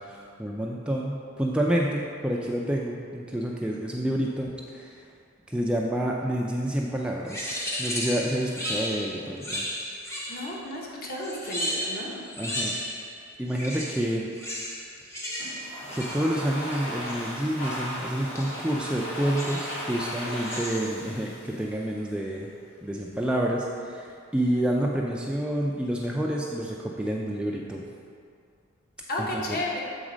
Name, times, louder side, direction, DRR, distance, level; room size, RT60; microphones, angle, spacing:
voice 1, 0.0-5.1 5.5-9.7 12.4-12.7 13.4-14.3 15.9-22.5 22.8-27.8 29.2-29.6, right 1 dB, 5° right, -2 dB, 0.3 m, -29 dB
sound 1, 7.3-10.6 11.2-13.2 13.5-17.3 18.4-18.7 19.4-19.8 20.3-21.1, equal, 15° left, 0.7 m, -34 dB
voice 2, 10.3-12.2 29.1-29.8, left 1 dB, 45° left, -2 dB, 1.0 m, -32 dB
Domestic sounds home sounds, 15.4-22.3, equal, 65° left, 1.7 m, -36 dB
7.3 x 4.0 x 5.0 m, 2.3 s
head